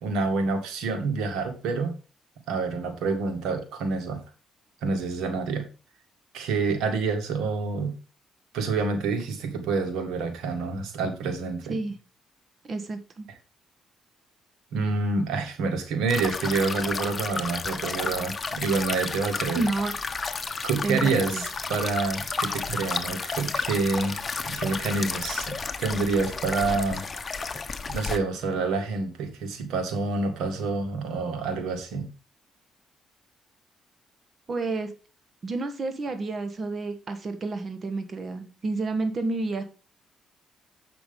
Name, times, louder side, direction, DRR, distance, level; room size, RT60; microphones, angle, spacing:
voice 1, 0.0-1.9 2.5-4.2 4.8-5.6 6.3-7.9 8.5-11.8 14.7-19.6 20.6-24.2 24.5-27.1 27.9-32.1, right 4 dB, 90° right, 6 dB, 1.9 m, -27 dB
voice 2, 12.6-13.3 19.5-19.9 20.8-21.4 34.5-34.9 35.4-39.6, right 3 dB, 40° right, 7 dB, 1.5 m, -30 dB
sound 1, 16.1-28.2, left 4 dB, 30° left, 1.0 m, -32 dB
8.1 x 6.0 x 5.3 m, 0.33 s
cardioid pair, 90°, 0 cm